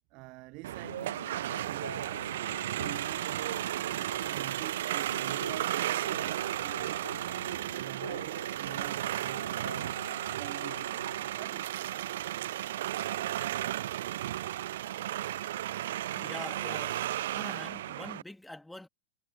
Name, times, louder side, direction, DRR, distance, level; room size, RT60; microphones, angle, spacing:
voice 1, 0.1-1.2 1.6-3.6 4.2-7.2 7.7-9.6 10.2-11.1 11.3-11.8, right 26 dB, 40° right, 1.4 m, -47 dB
sound 1, 0.6-18.2, right 13 dB, 55° right, 0.6 m, -34 dB
sound 2, 0.8-11.3, left 1 dB, 85° left, 3.0 m, -46 dB
voice 2, 16.0-17.0 17.3-18.9, left 1 dB, 5° left, 3.2 m, -45 dB
figure-of-eight pair, 90°, 0 cm